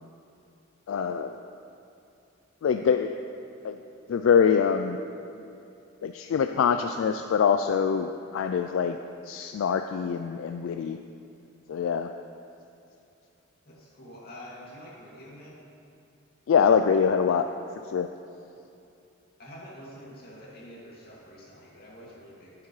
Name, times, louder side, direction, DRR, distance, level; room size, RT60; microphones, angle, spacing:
voice 1, 0.9-1.3 2.6-3.2 3.6-3.8 4.1-5.0 6.0-9.0 9.3-11.0 11.7-12.1 16.5-17.5 17.9-18.1, left 6 dB, 75° left, 7 dB, 0.3 m, -24 dB
voice 2, 13.7-15.6 19.4-22.5, equal, 50° left, -6 dB, 2.3 m, -46 dB
12.0 x 8.4 x 3.2 m, 2.7 s
head